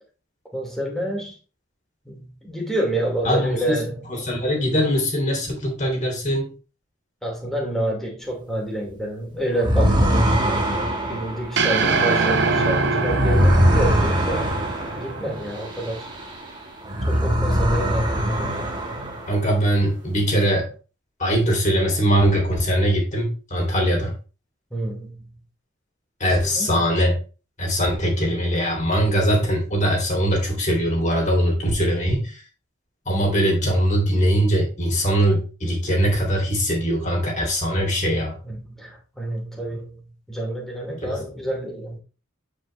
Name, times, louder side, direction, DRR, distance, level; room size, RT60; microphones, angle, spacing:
voice 1, 0.5-1.4 2.0-4.1 7.2-10.4 11.1-14.5 15.0-16.1 17.1-18.7 24.7-25.3 26.2-26.7 38.4-42.0, right 1 dB, ahead, 2.7 m, -28 dB
voice 2, 3.2-3.8 4.1-6.5 19.3-20.7 21.2-24.1 26.2-27.2 27.6-32.4 33.0-38.4 41.0-41.2, equal, 40° left, 3.1 m, -21 dB
sound 1, 9.6-16.5 16.8-19.5, equal, 20° right, 1.6 m, -22 dB
sound 2, 11.6-15.9, right 4 dB, 60° right, 1.1 m, -23 dB
9.0 x 5.0 x 3.3 m
head